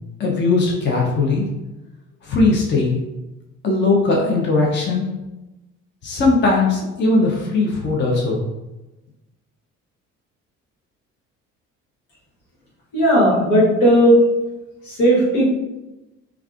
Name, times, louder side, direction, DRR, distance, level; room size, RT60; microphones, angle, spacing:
voice 1, 0.2-1.5 2.2-3.0 3.6-5.1 6.0-8.4, left 3 dB, 30° left, -2 dB, 0.7 m, -19 dB
voice 2, 12.9-14.2 14.9-15.5, right 1 dB, 65° left, -6 dB, 1.4 m, -15 dB
3.4 x 2.3 x 2.4 m, 1.0 s
figure-of-eight pair, 50°, 38 cm